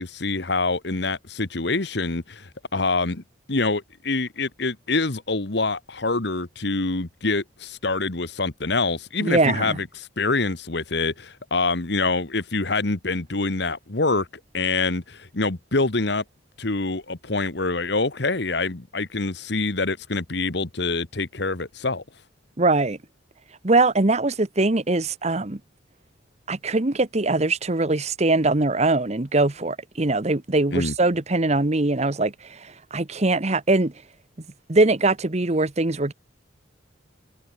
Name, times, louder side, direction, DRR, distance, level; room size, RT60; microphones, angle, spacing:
voice 1, 0.0-3.2 3.5-14.3 14.5-16.2 16.6-22.0 30.7-30.9, left 3 dB, 60° left, 1.5 m, -25 dB
voice 2, 9.2-9.8 22.6-23.0 23.6-25.6 26.5-33.9 34.7-36.1, right 2 dB, 35° right, 1.0 m, -22 dB
head